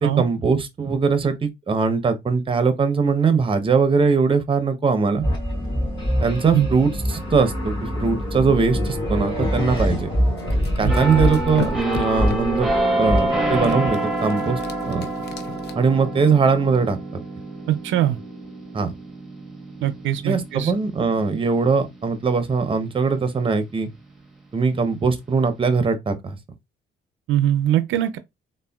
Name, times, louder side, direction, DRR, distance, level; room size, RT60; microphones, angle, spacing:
voice 1, 0.0-5.2 6.2-10.1 10.8-12.7 13.0-14.6 14.9-15.1 15.8-17.0 18.7-18.9 20.2-23.9 24.5-26.4, right 5 dB, 25° right, 0.6 m, -21 dB
sound 1, 5.2-13.9, equal, 25° left, 1.7 m, -24 dB
sound 2, 10.4-12.6 13.6-15.7, left 8 dB, 55° left, 0.6 m, -35 dB
sound 3, 10.9-22.4 22.9-23.1, right 1 dB, ahead, 0.9 m, -28 dB
voice 2, 17.7-18.2 19.8-20.7 27.3-28.2, right 12 dB, 80° right, 0.4 m, -21 dB
3.6 x 2.1 x 2.2 m
cardioid pair, 90°, 20 cm